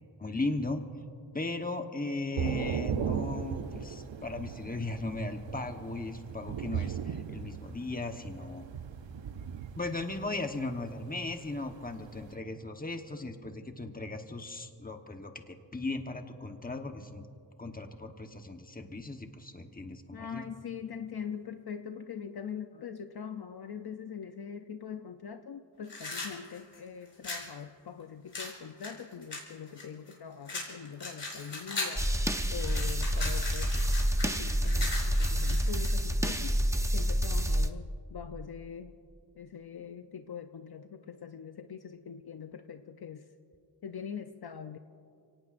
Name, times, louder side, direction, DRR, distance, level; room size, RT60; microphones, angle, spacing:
voice 1, 0.2-0.8 1.3-8.6 9.8-17.3 17.6-20.4, left 2 dB, 20° left, 5 dB, 1.1 m, -37 dB
Thunder / Rain, 2.4-12.3, right 8 dB, 80° right, 0.7 m, -37 dB
voice 2, 20.1-32.1 32.5-33.8 34.2-36.5 36.9-38.9 39.4-43.3 43.8-44.8, left 7 dB, 60° left, 7 dB, 0.6 m, -42 dB
sound 1, 25.8-27.5 28.3-30.1 30.5-32.1 32.4-35.9, left 3 dB, 75° left, 5.0 m, -38 dB
sound 2, 32.0-37.7, equal, 5° right, 0.6 m, -28 dB
30.0 x 18.0 x 2.6 m, 2.4 s
wide cardioid pair, 105°, 44 cm